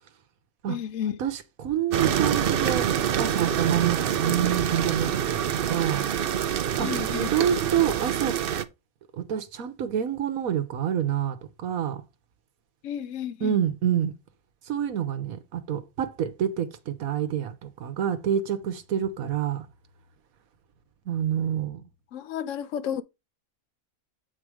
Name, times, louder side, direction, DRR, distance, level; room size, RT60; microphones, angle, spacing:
voice 1, 0.7-1.2 6.8-7.3 12.8-13.6 22.1-23.0, left 9 dB, 70° left, 0.9 m, -32 dB
voice 2, 1.2-5.4 5.7-6.0 6.8-8.4 9.1-12.0 13.4-14.1 14.7-19.7 21.1-21.9, right 9 dB, 85° right, 1.3 m, -27 dB
sound 1, 1.9-8.6, right 9 dB, 55° right, 0.6 m, -26 dB
7.7 x 4.3 x 4.8 m
omnidirectional pair, 1.4 m